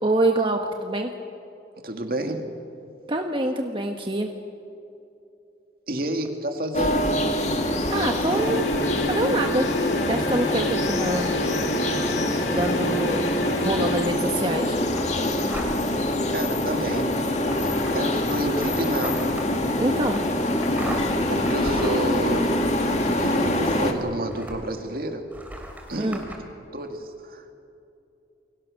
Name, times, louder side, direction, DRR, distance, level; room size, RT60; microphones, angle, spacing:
voice 1, 0.0-1.1 3.1-4.3 7.9-8.6 9.1-9.6 10.0-11.3 12.5-13.3 13.6-14.8 19.8-20.2 26.0-26.2, right 1 dB, 30° right, 3 dB, 1.2 m, -25 dB
voice 2, 1.8-2.4 5.9-7.1 16.3-17.2 17.6-19.4 21.3-22.6 23.2-25.3 25.9-26.5 26.7-27.5, right 1 dB, 55° right, 5 dB, 2.4 m, -30 dB
sound 1, 6.7-23.9, left 1 dB, 40° left, 2.1 m, -25 dB
sound 2, 8.2-14.2, left 1 dB, 85° left, 2.8 m, -30 dB
sound 3, 14.9-16.0 16.5-24.9 25.3-26.4, right 1 dB, 10° right, 3.3 m, -39 dB
28.5 x 23.5 x 6.5 m, 2.6 s
head